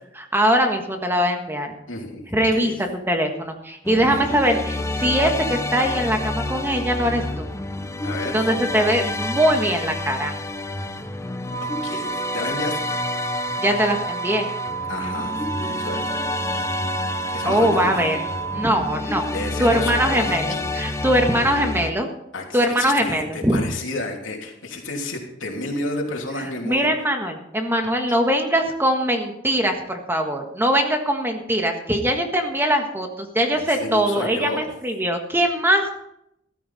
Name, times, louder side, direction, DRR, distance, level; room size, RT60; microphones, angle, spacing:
voice 1, 0.2-1.7 2.3-2.7 3.1-7.5 8.3-10.3 13.6-14.5 17.4-18.2 18.5-19.3 19.6-22.1 22.5-23.6 26.6-35.9, equal, 10° right, 4 dB, 1.5 m, -21 dB
voice 2, 1.9-2.3 2.5-2.8 3.9-4.4 8.0-8.4 11.6-12.7 14.9-16.1 17.3-18.0 19.3-20.3 22.3-26.9 28.1-28.2 33.5-34.7, left 2 dB, 85° left, 1 dB, 3.0 m, -31 dB
sound 1, 3.8-21.9, left 2 dB, 15° left, 0.7 m, -29 dB
sound 2, 11.4-18.6, right 6 dB, 70° right, 3.0 m, -31 dB
14.5 x 13.0 x 4.2 m, 0.79 s
head